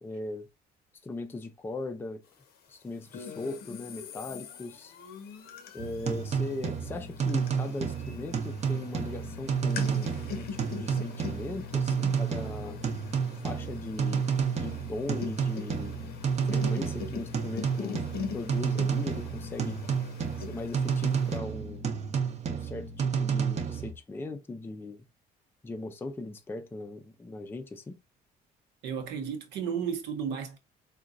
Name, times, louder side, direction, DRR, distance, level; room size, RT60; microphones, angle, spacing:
voice 1, 0.0-0.5 1.0-2.2 2.7-4.9 5.7-12.8 13.4-14.3 14.6-16.0 16.5-18.0 18.3-19.8 20.5-21.9 22.5-25.0 25.6-28.0, left 2 dB, 15° left, 0.4 m, -39 dB
sound 1, 3.1-21.4, left 7 dB, 70° left, 0.6 m, -42 dB
sound 2, 5.8-23.9, right 6 dB, 40° right, 0.6 m, -31 dB
voice 2, 28.8-30.6, right 7 dB, 85° right, 0.8 m, -33 dB
3.7 x 2.2 x 2.5 m
cardioid pair, 110°, 17 cm